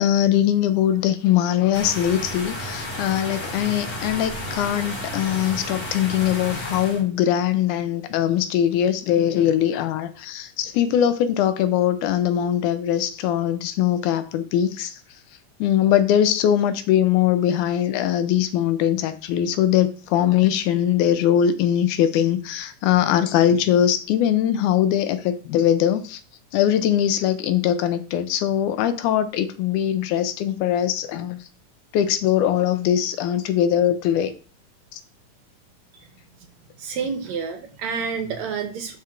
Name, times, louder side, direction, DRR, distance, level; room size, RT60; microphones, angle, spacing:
voice 1, 0.0-15.0 15.6-26.2 26.5-31.4 31.9-34.3 34.9-35.0, left 10 dB, 80° left, 1.9 m, -21 dB
sound 1, 1.7-7.0, left 1 dB, 55° left, 3.9 m, -32 dB
voice 2, 36.8-39.0, right 6 dB, 75° right, 1.8 m, -29 dB
11.5 x 4.4 x 2.4 m
omnidirectional pair, 3.8 m